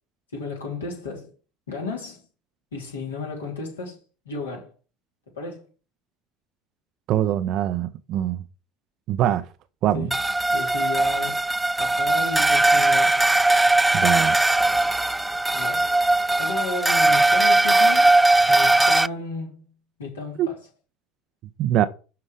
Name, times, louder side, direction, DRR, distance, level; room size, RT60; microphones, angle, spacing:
voice 1, 0.3-1.3 1.7-2.2 2.7-4.0 4.3-4.7 5.4-5.7 9.9-10.1 10.5-11.4 11.8-13.2 15.5-15.9 16.4-18.1 18.5-19.6 20.0-20.6, left 4 dB, 75° left, 3.4 m, -33 dB
voice 2, 7.1-8.4 9.1-9.4 9.8-10.1 13.9-14.4 20.4-20.5 21.6-21.9, right 12 dB, 50° right, 0.6 m, -23 dB
sound 1, 10.1-19.1, right 2 dB, 10° right, 0.3 m, -19 dB
11.5 x 4.9 x 4.9 m
figure-of-eight pair, 65°, 0 cm